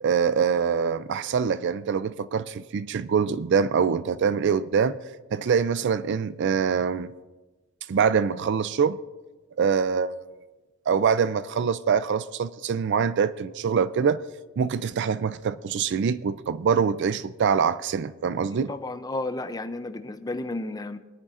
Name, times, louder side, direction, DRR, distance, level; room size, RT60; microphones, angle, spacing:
voice 1, 0.0-5.0 5.3-7.1 7.9-9.0 9.6-10.2 10.9-14.2 14.6-18.7, right 6 dB, 60° right, 0.4 m, -24 dB
voice 2, 18.5-21.0, left 2 dB, 20° left, 0.4 m, -32 dB
23.0 x 10.0 x 2.5 m
head